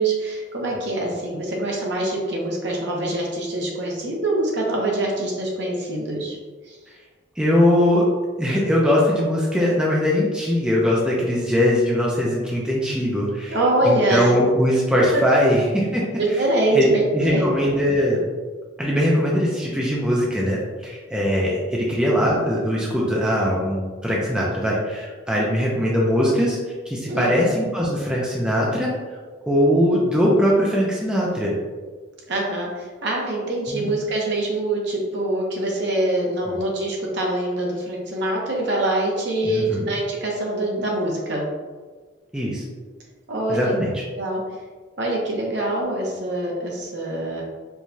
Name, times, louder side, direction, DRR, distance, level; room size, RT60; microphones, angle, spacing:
voice 1, 0.0-6.4 6.7-6.8 13.5-14.3 15.1-15.2 16.2-17.5 21.8-21.9 27.1-27.4 32.3-41.5 43.3-43.7 44.2-44.4 45.0-47.4, right 1 dB, 60° right, -2 dB, 0.8 m, -24 dB
voice 2, 7.4-8.1 8.4-13.6 13.8-16.0 16.7-16.9 17.1-18.2 18.8-26.6 26.9-28.9 29.4-31.5 33.7-33.9 36.5-36.6 39.4-39.9 42.3-42.6 43.5-44.0, equal, 5° right, -5 dB, 0.4 m, -21 dB
4.6 x 2.2 x 2.6 m, 1.4 s
head